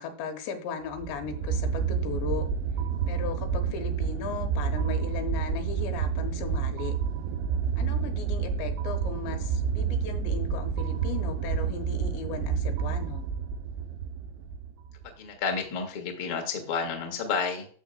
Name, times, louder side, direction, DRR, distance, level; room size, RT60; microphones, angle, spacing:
voice 1, 0.0-2.5 3.1-7.0 7.8-13.2, left 6 dB, 80° left, 6 dB, 3.4 m, -37 dB
sound 1, 0.9-15.1, right 7 dB, 80° right, 2.8 m, -29 dB
voice 2, 15.2-17.7, left 5 dB, 50° left, 2 dB, 1.6 m, -30 dB
13.0 x 7.1 x 2.3 m, 0.44 s
omnidirectional pair, 5.2 m